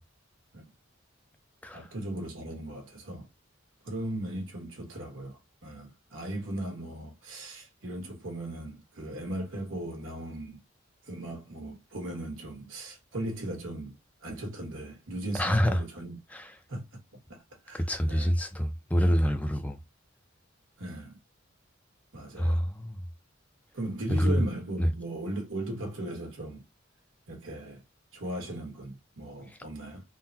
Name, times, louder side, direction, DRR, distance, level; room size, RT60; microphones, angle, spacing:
voice 1, 1.7-3.3 3.8-10.6 11.1-13.9 14.2-16.2 16.7-16.8 17.3-17.8 18.1-18.3 18.9-19.1 20.8-21.2 22.1-22.6 23.7-26.6 27.3-27.8 28.1-30.0, right 1 dB, 85° right, 1.4 m, -37 dB
voice 2, 15.4-15.8 16.3-16.5 17.7-19.8 22.4-23.0 24.2-24.4 24.8-24.9, equal, 5° left, 0.4 m, -26 dB
3.7 x 2.1 x 2.7 m
head